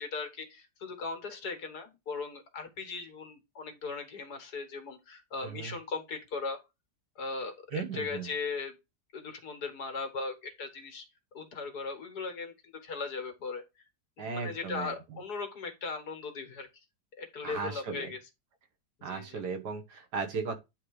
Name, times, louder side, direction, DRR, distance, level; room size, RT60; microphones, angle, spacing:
voice 1, 0.0-6.6 7.2-8.7 9.1-11.0 11.3-13.6 14.2-16.7 17.2-18.2 19.0-19.4, left 4 dB, 70° left, 2.1 m, -38 dB
voice 2, 5.4-5.7 7.7-8.3 14.2-15.2 17.4-18.1 19.0-20.5, right 5 dB, 70° right, 1.9 m, -36 dB
9.7 x 3.5 x 4.9 m
omnidirectional pair, 1.8 m